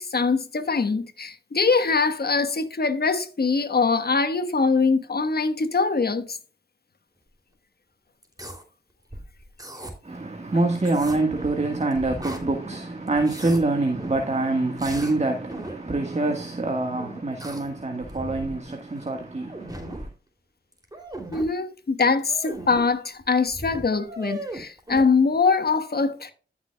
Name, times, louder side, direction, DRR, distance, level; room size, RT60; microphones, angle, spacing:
voice 1, 0.0-6.4 21.3-26.3, left 4 dB, 55° left, 1.4 m, -23 dB
sound 1, 8.2-8.6 9.1-9.9 10.8-11.6 11.9-12.8 13.1-13.6 14.0-14.3 14.8-15.2 15.5-15.8 17.0-17.7 18.0-18.6 19.0-19.1 19.4-20.1 20.7-21.5 22.2-22.8 23.2-23.3 23.5-25.0, right 1 dB, 20° right, 3.0 m, -37 dB
voice 2, 10.0-20.1, right 2 dB, 35° right, 1.6 m, -25 dB
13.5 x 6.1 x 2.3 m
cardioid pair, 40°, 19 cm